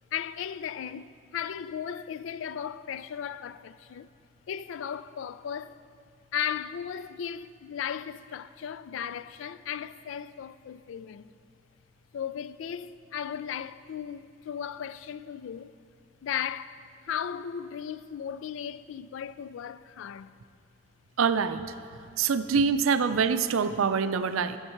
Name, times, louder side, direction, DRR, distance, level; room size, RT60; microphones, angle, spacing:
voice 1, 0.1-4.1 4.5-5.8 6.3-11.3 12.1-15.7 16.2-16.8 17.0-20.3, left 8 dB, 75° left, 0.3 m, -36 dB
voice 2, 21.2-21.6 22.2-24.6, right 5 dB, 90° right, 0.4 m, -25 dB
13.0 x 7.3 x 4.4 m
head